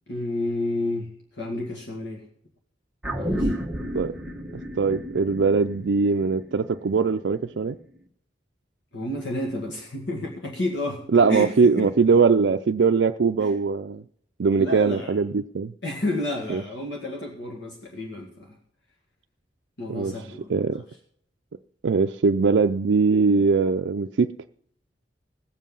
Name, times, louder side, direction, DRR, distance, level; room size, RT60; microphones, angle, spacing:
voice 1, 0.1-2.3 3.2-3.5 8.9-11.0 11.3-11.9 13.4-13.5 14.6-15.1 15.8-18.6 19.8-20.5, left 1 dB, 80° left, 0 dB, 2.1 m, -31 dB
sound 1, 3.0-7.6 8.0-8.1, equal, 5° right, 1.2 m, -32 dB
voice 2, 4.8-7.8 11.1-14.0 14.4-15.7 16.5-16.6 19.9-20.1 20.5-20.8 21.8-24.3, right 4 dB, 75° right, 6 dB, 0.4 m, -21 dB
19.0 x 7.4 x 5.4 m, 0.67 s
head